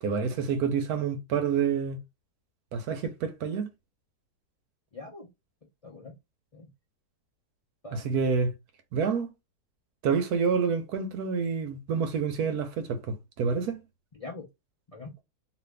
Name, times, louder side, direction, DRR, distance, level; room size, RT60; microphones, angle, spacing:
voice 1, 0.0-2.0 2.7-3.7 7.9-8.5 8.9-9.3 10.0-13.8, right 6 dB, 70° right, 1.1 m, -28 dB
voice 2, 4.9-5.3 5.8-6.2 6.5-6.7 7.8-8.3 14.1-14.5 14.9-15.2, left 3 dB, 55° left, 0.4 m, -43 dB
2.8 x 2.5 x 3.2 m
omnidirectional pair, 1.8 m